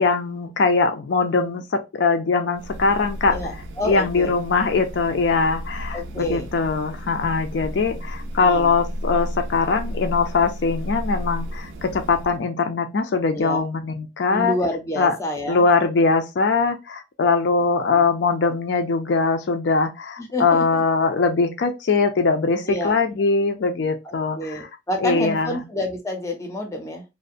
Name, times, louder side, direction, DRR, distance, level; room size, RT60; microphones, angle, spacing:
voice 1, 0.0-3.4 3.9-14.5 15.0-15.1 15.5-24.7 25.0-25.6, left 4 dB, 75° left, 0.4 m, -21 dB
sound 1, 2.5-12.4, equal, 90° right, 0.4 m, -33 dB
voice 2, 3.3-4.4 5.9-6.5 8.4-8.7 13.3-13.6 14.3-15.6 20.2-20.6 22.7-23.0 24.0-27.0, left 1 dB, 15° left, 0.5 m, -28 dB
2.4 x 2.0 x 2.4 m
head